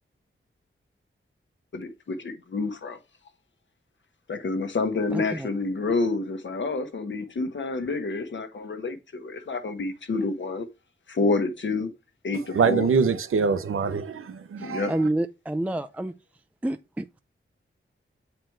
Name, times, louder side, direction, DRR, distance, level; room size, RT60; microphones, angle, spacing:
voice 1, 1.7-3.0 4.3-10.7 11.1-11.9 12.2-12.9 14.6-14.9, left 3 dB, 65° left, 1.1 m, -28 dB
voice 2, 5.1-5.5 14.6-16.1 16.6-17.2, right 1 dB, 5° right, 0.4 m, -29 dB
voice 3, 12.5-14.8, right 5 dB, 90° right, 0.8 m, -24 dB
7.8 x 4.3 x 4.5 m
wide cardioid pair, 135°, 21 cm